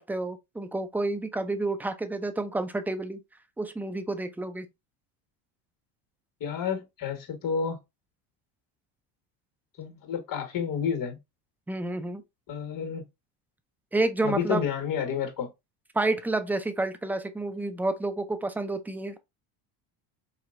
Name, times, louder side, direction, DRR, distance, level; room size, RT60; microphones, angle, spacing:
voice 1, 0.1-3.2 3.6-4.7 11.7-12.2 13.9-14.6 15.9-19.2, right 2 dB, 5° right, 0.4 m, -29 dB
voice 2, 6.4-7.8 9.8-11.2 12.5-13.1 14.2-15.5, left 7 dB, 45° left, 1.6 m, -30 dB
4.2 x 2.8 x 2.5 m
supercardioid pair, 95°, 47 cm